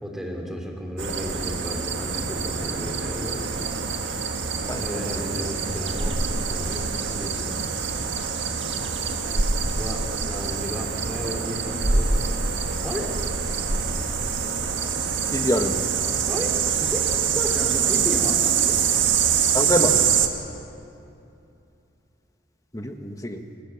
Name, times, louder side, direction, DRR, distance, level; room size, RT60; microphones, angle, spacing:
voice 1, 0.0-3.8 4.8-6.9 7.1-7.8 9.6-13.1 16.3-16.5 16.8-18.8, equal, ahead, 0 dB, 3.2 m, -34 dB
sound 1, 1.0-20.3, right 6 dB, 75° right, 1.7 m, -25 dB
voice 2, 4.7-5.2 15.3-15.8 19.5-20.1 22.7-23.4, equal, 20° left, 5 dB, 1.4 m, -26 dB
29.0 x 17.0 x 7.2 m, 2.7 s
head